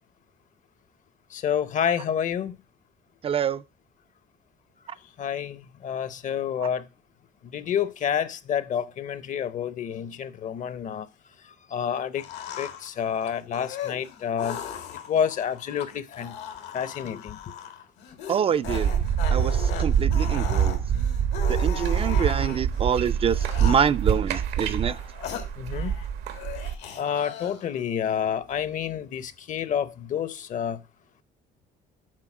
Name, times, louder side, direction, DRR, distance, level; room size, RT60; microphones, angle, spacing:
voice 1, 1.3-2.5 5.2-6.8 7.5-11.1 11.7-12.2 12.6-14.6 15.1-16.3 16.7-17.4 25.6-25.9 27.0-30.8, left 8 dB, 50° left, 0.7 m, -28 dB
voice 2, 3.2-3.6 18.3-18.9 19.3-20.8 21.5-25.0, right 8 dB, 35° right, 0.3 m, -26 dB
sound 1, 12.1-22.8 23.3-24.1 24.7-26.1 26.3-27.8, left 8 dB, 85° left, 1.6 m, -38 dB
sound 2, 18.6-26.7, right 8 dB, 80° right, 1.1 m, -25 dB
7.5 x 4.2 x 5.9 m
cardioid pair, 110°, 17 cm